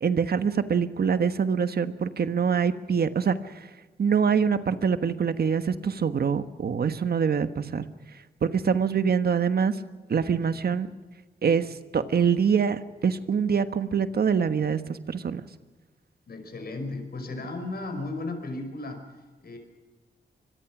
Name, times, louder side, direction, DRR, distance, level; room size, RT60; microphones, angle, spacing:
voice 1, 0.0-3.4 4.0-7.9 8.4-9.8 10.1-10.9 11.4-11.7 11.9-15.4, right 6 dB, 65° right, 11 dB, 1.4 m, -24 dB
voice 2, 16.3-19.6, left 2 dB, 65° left, 6 dB, 5.3 m, -35 dB
25.0 x 21.5 x 6.2 m, 1.3 s
wide cardioid pair, 85°, 17 cm